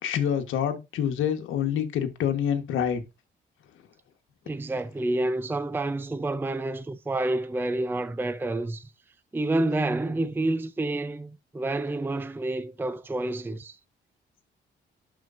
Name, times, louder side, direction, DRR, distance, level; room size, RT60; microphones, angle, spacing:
voice 1, 0.0-3.0, left 9 dB, 80° left, 1.3 m, -27 dB
voice 2, 4.5-8.9 9.3-13.8, right 2 dB, 10° right, 0.5 m, -29 dB
11.5 x 4.5 x 2.6 m
cardioid pair, 90°, 20 cm